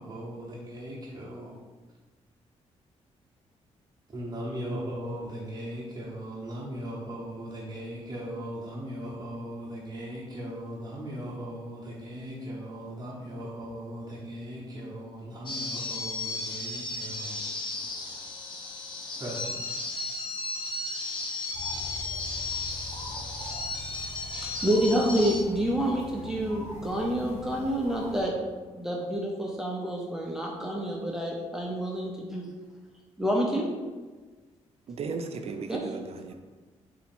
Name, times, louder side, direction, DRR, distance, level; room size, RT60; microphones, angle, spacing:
voice 1, 0.0-1.6 4.1-17.5 17.9-18.0 19.2-19.8, equal, 30° right, -7 dB, 0.9 m, -38 dB
sound 1, 15.5-25.4, left 3 dB, 40° left, 0.8 m, -35 dB
sound 2, 21.5-28.2, left 1 dB, 65° left, 1.1 m, -43 dB
voice 2, 24.2-28.3 28.7-32.4 33.2-33.7 35.7-35.8, right 1 dB, 5° right, -2 dB, 0.6 m, -28 dB
voice 3, 34.9-36.3, right 5 dB, 55° right, 6 dB, 0.5 m, -35 dB
4.0 x 2.8 x 4.3 m, 1.3 s
cardioid pair, 90°, 12 cm